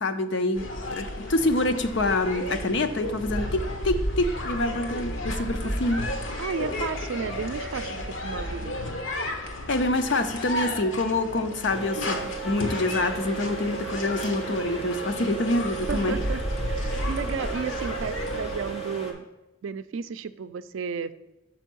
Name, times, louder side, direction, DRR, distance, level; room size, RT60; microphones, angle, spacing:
voice 1, 0.0-6.1 9.7-16.2, left 2 dB, 65° left, 8 dB, 0.6 m, -26 dB
sound 1, 0.5-18.7, left 1 dB, 80° left, 1.0 m, -32 dB
voice 2, 6.4-9.0 15.2-15.5 15.9-16.4 16.7-19.2 19.6-21.1, right 6 dB, 80° right, 13 dB, 0.4 m, -33 dB
sound 2, 11.7-19.1, right 6 dB, 30° left, 1.3 m, -36 dB
6.2 x 4.5 x 6.1 m, 1.0 s
head